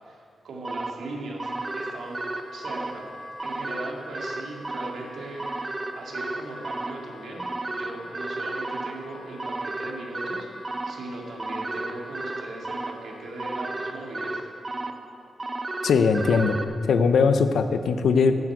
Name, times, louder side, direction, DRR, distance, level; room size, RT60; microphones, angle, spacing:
voice 1, 0.0-2.2 2.5-3.1 3.4-14.5, right 2 dB, 70° right, -1 dB, 2.0 m, -39 dB
sound 1, 0.6-16.6, right 2 dB, 20° right, 0.5 m, -34 dB
Wind instrument woodwind instrument, 1.4-14.6, left 2 dB, 50° left, 1.6 m, -47 dB
voice 2, 15.8-18.4, left 5 dB, 75° left, 9 dB, 0.6 m, -20 dB
9.2 x 7.9 x 7.7 m, 2.5 s
wide cardioid pair, 175°, 0 cm